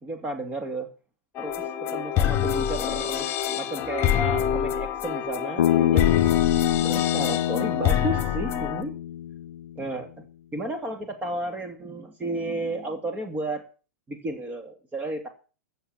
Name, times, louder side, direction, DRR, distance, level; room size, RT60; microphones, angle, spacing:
voice 1, 0.0-0.9 1.4-3.3 3.6-6.3 6.8-8.9 9.8-10.1 10.5-13.7 14.1-15.3, right 1 dB, 20° right, 5 dB, 2.6 m, -32 dB
sound 1, 1.3-8.8, left 10 dB, 30° left, 1.7 m, -26 dB
Bass guitar, 5.6-9.8, left 11 dB, 75° left, 0.6 m, -25 dB
15.0 x 7.3 x 7.4 m, 0.36 s
hypercardioid pair, 115°, 8 cm